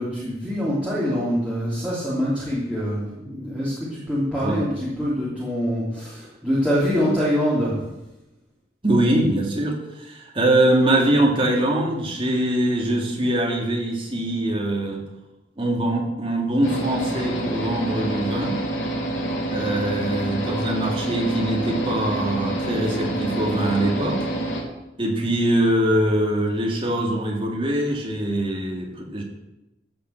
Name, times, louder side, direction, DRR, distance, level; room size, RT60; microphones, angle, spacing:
voice 1, 0.0-7.8, equal, 5° right, -10 dB, 3.2 m, -24 dB
voice 2, 4.3-4.7 8.8-15.0 15.6-18.6 19.5-24.3 25.0-29.2, right 1 dB, 30° right, 0 dB, 2.4 m, -23 dB
sound 1, 16.6-24.6, right 1 dB, 90° left, 3.5 m, -27 dB
13.5 x 6.0 x 7.9 m, 0.95 s
head